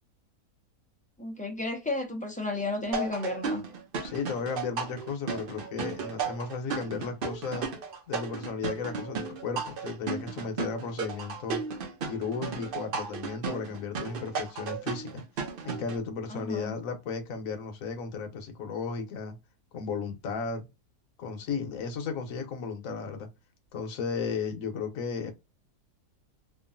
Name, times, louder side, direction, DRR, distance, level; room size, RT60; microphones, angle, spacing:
voice 1, 1.2-3.6 16.3-16.8, left 2 dB, 10° left, 0.5 m, -33 dB
sound 1, 2.9-16.0, right 5 dB, 85° right, 0.4 m, -35 dB
voice 2, 4.0-7.7 8.1-11.6 12.1-15.2 15.6-19.4 19.7-20.7 21.2-23.3 23.7-25.3, left 5 dB, 65° left, 1.2 m, -34 dB
3.0 x 2.5 x 2.4 m
omnidirectional pair, 1.7 m